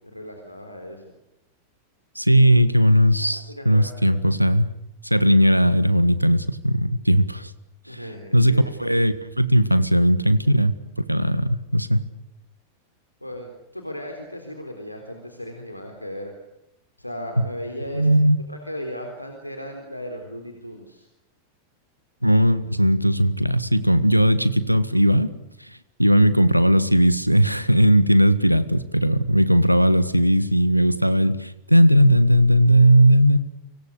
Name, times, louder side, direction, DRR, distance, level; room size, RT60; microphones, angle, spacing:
voice 1, 0.1-1.1 3.2-4.2 7.9-8.9 13.2-13.5 13.7-16.3 17.0-18.2 18.5-21.1, equal, 90° left, 3 dB, 3.9 m, -36 dB
voice 2, 2.1-4.7 5.0-7.5 7.9-8.0 8.3-10.7 11.1-12.0 17.4-17.5 17.9-18.4 22.2-25.3 26.0-33.4, equal, 90° right, 14 dB, 1.6 m, -18 dB
29.0 x 25.5 x 6.7 m, 0.84 s
figure-of-eight pair, 90°, 0 cm